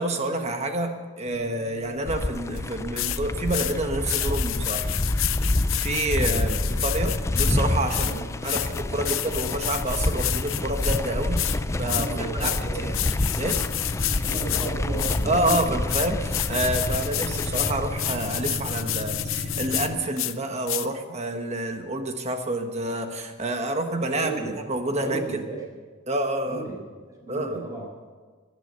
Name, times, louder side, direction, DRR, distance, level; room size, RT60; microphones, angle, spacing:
voice 1, 0.0-4.9 5.8-6.5 6.8-8.1 8.4-12.9 13.3-13.6 15.2-24.3 24.7-25.4 26.1-26.6 27.3-27.7, right 1 dB, 30° right, 6 dB, 1.3 m, -28 dB
sound 1, 1.3-19.9, left 2 dB, 30° left, 5.3 m, -37 dB
sound 2, 2.1-18.1, left 1 dB, 15° left, 0.4 m, -28 dB
sound 3, 2.6-2.7 3.0-3.2 3.5-3.7 4.0-7.6 7.9-11.0 11.4-11.6 11.9-12.1 12.4-12.6 12.9-14.7 15.0-19.9 20.2-20.3 20.7-20.9, left 15 dB, 65° left, 0.6 m, -29 dB
voice 2, 6.2-6.6 8.0-8.3 11.9-13.5 14.2-15.7 24.1-24.6 25.0-25.6 26.4-26.8 27.2-27.9, right 3 dB, 15° right, -2 dB, 4.4 m, -35 dB
17.5 x 11.5 x 6.7 m, 1.5 s
head